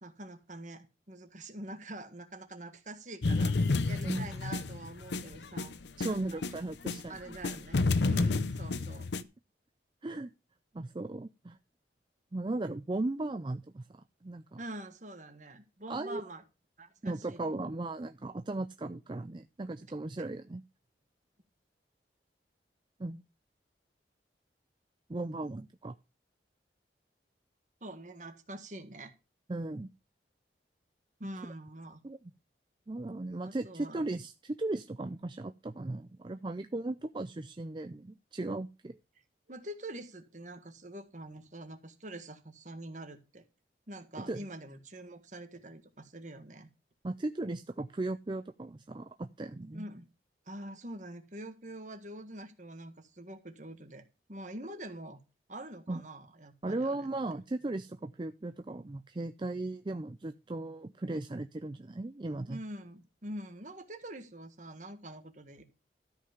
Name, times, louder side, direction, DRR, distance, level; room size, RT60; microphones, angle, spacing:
voice 1, 0.0-3.6 3.9-5.8 6.1-6.5 7.1-9.1 14.6-16.4 16.8-17.5 27.8-29.1 31.2-32.0 33.4-34.0 39.5-43.4 43.9-46.7 49.7-50.0 50.4-55.2 55.5-57.1 62.5-65.6, right 1 dB, 45° right, 7 dB, 1.6 m, -45 dB
sound 1, 3.2-7.0 7.3-9.2, left 3 dB, 75° left, 0.7 m, -30 dB
voice 2, 6.0-7.4 10.0-10.3 10.7-11.6 12.3-14.6 15.9-16.2 17.0-20.6 23.0-23.2 25.1-25.9 29.5-29.9 32.0-32.2 32.9-39.0 44.2-44.4 47.0-49.9 55.9-56.0 56.6-62.6, right 2 dB, 25° right, 9 dB, 0.4 m, -37 dB
13.0 x 5.6 x 5.2 m, 0.29 s
head